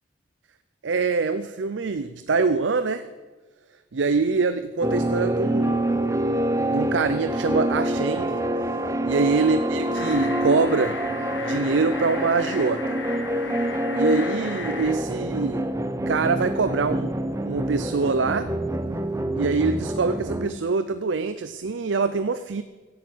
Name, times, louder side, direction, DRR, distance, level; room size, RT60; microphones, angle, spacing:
voice 1, 0.8-3.1 3.9-5.8 6.7-8.4 9.0-11.0 11.4-13.0 13.9-15.7 16.1-18.5 19.4-22.6, right 4 dB, 80° right, 12 dB, 0.5 m, -24 dB
sound 1, 4.8-20.5, right 1 dB, 15° right, 0.7 m, -26 dB
sound 2, 9.9-14.9, left 3 dB, 70° left, 1.9 m, -36 dB
16.0 x 8.7 x 8.3 m, 1.3 s
head